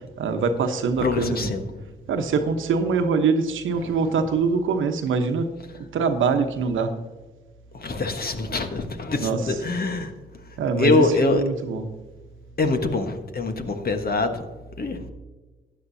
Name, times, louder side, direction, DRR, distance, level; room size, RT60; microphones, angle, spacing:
voice 1, 0.2-1.5 2.1-5.5 5.9-6.9 9.2-9.5 10.6-11.8, right 5 dB, 70° right, 7 dB, 1.1 m, -23 dB
voice 2, 1.0-1.6 3.8-4.0 7.8-10.1 10.8-11.4 12.6-14.4 14.8-15.1, left 3 dB, 45° left, 6 dB, 1.4 m, -24 dB
15.0 x 9.8 x 2.8 m, 1.3 s
hypercardioid pair, 45°, 21 cm